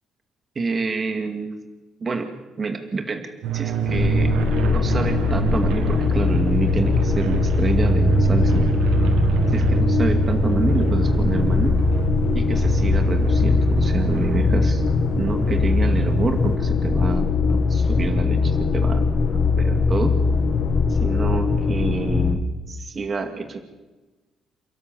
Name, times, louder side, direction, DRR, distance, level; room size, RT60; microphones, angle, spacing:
voice 1, 0.6-2.3 2.6-4.3 4.6-8.7 9.5-11.8 12.3-14.8 15.2-19.0 19.6-20.2 20.9-23.6, right 4 dB, 35° right, 5 dB, 2.3 m, -27 dB
sound 1, 3.4-16.6, right 6 dB, 85° right, 1.6 m, -25 dB
sound 2, 3.9-22.4, left 4 dB, 55° left, 1.7 m, -21 dB
29.0 x 12.5 x 7.7 m, 1.2 s
cardioid pair, 100°, 0 cm